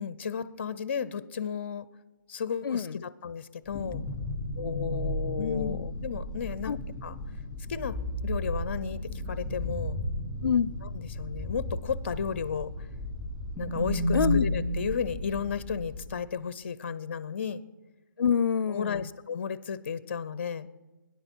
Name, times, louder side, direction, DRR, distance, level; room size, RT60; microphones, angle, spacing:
voice 1, 0.0-1.9 2.3-4.0 5.4-6.7 7.0-7.1 7.7-9.0 9.3-10.0 11.1-12.7 13.6-17.6 18.7-20.7, left 6 dB, 35° left, 17 dB, 0.5 m, -33 dB
voice 2, 2.6-3.0 4.6-5.9 6.6-6.8 10.4-10.7 14.1-14.5 18.2-19.1, left 7 dB, 85° left, 21 dB, 0.4 m, -28 dB
sound 1, 3.7-16.0, left 1 dB, 5° right, 3.8 m, -33 dB
21.5 x 10.5 x 4.5 m, 1.2 s
hypercardioid pair, 170°, 11 cm